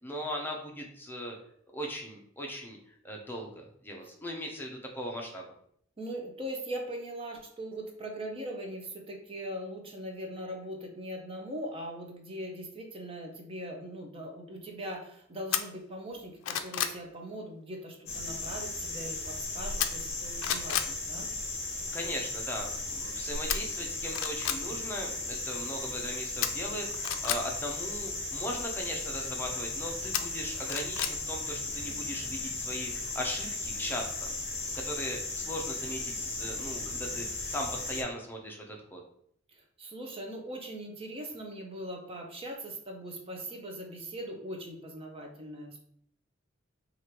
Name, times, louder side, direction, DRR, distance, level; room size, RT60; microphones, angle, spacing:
voice 1, 0.0-1.4 1.7-5.5 21.9-34.3 34.7-39.0, equal, 10° left, 0 dB, 0.6 m, -38 dB
voice 2, 6.0-21.3 39.8-45.8, right 1 dB, 30° right, 2 dB, 0.6 m, -40 dB
sound 1, 15.5-15.6 16.1-17.0 19.8-20.1 20.4-20.9 23.5-23.6 24.1-24.6 26.4-27.4 30.1-31.1 31.5-31.6, left 10 dB, 85° left, 0.4 m, -31 dB
sound 2, 18.1-38.0, left 2 dB, 35° left, 1.0 m, -36 dB
3.2 x 2.5 x 4.4 m, 0.67 s
head